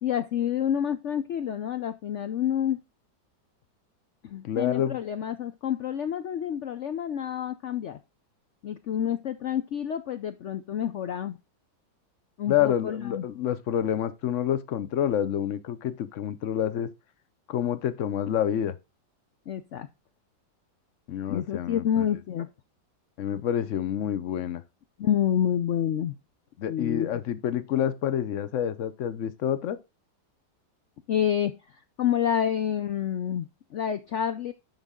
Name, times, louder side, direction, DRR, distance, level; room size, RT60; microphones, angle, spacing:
voice 1, 0.0-2.8 4.2-8.0 8.6-11.4 12.4-13.2 19.5-19.9 21.3-22.5 25.0-26.1 26.7-27.1 31.1-34.5, left 9 dB, 85° left, 0.6 m, -28 dB
voice 2, 4.4-5.0 12.5-16.9 17.5-18.7 21.1-22.0 23.2-24.6 26.6-29.8, left 10 dB, 55° left, 0.9 m, -28 dB
10.5 x 5.7 x 3.7 m
omnidirectional pair, 2.0 m